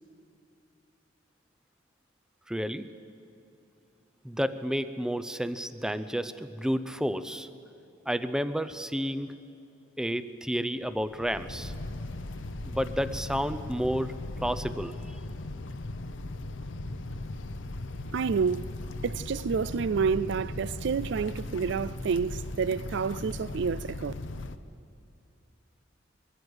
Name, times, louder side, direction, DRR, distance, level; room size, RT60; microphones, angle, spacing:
voice 1, 2.5-2.9 4.2-7.5 8.1-9.4 10.0-11.7 12.6-15.0, equal, 5° right, 0.6 m, -31 dB
sound 1, 10.8-24.6, left 2 dB, 70° left, 0.8 m, -38 dB
voice 2, 18.1-18.6 19.0-24.1, right 5 dB, 65° right, 0.4 m, -29 dB
22.5 x 14.5 x 8.0 m
head